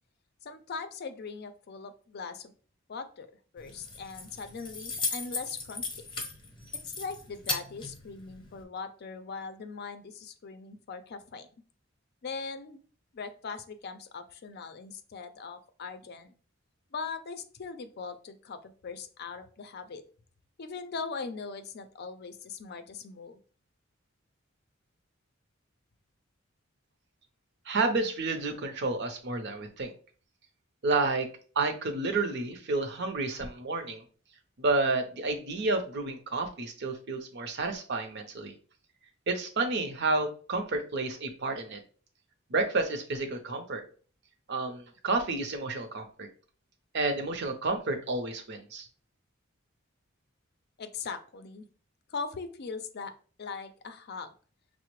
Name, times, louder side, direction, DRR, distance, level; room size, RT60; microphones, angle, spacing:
voice 1, 0.4-2.5 2.9-6.0 6.7-11.5 12.2-12.8 13.1-16.3 16.9-20.0 20.6-23.4 50.8-51.7 52.1-53.1 53.4-54.3, left 4 dB, 55° left, 9 dB, 0.5 m, -40 dB
Keys jangling, 3.6-8.6, left 3 dB, 25° left, 0.7 m, -37 dB
voice 2, 27.7-29.9 30.8-31.3 31.6-34.0 34.6-38.5 39.3-41.8 42.5-43.8 44.5-46.3 46.9-48.9, right 3 dB, 60° right, 6 dB, 0.7 m, -30 dB
5.6 x 2.1 x 3.0 m, 0.41 s
head